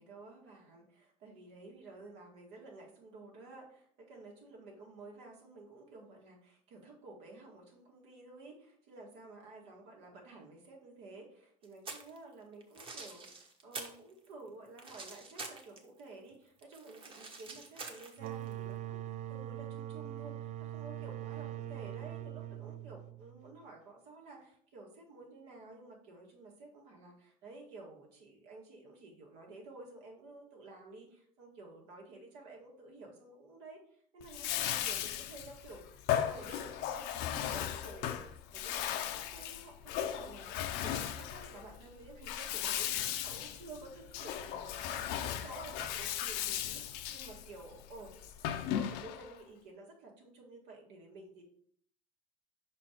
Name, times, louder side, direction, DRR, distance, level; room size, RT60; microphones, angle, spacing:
voice 1, 0.0-38.2 38.5-48.2 48.5-51.4, right 2 dB, 85° right, 0 dB, 2.0 m, -52 dB
sound 1, 11.6-12.2 12.6-14.0 14.3-16.0 16.3-18.5, right 3 dB, 30° right, 1.2 m, -46 dB
sound 2, 18.2-23.6, right 13 dB, 45° right, 0.4 m, -42 dB
Bathtub (filling or washing), 34.2-49.4, left 10 dB, 80° left, 0.6 m, -37 dB
5.5 x 4.4 x 4.4 m, 0.63 s
cardioid pair, 110°, 17 cm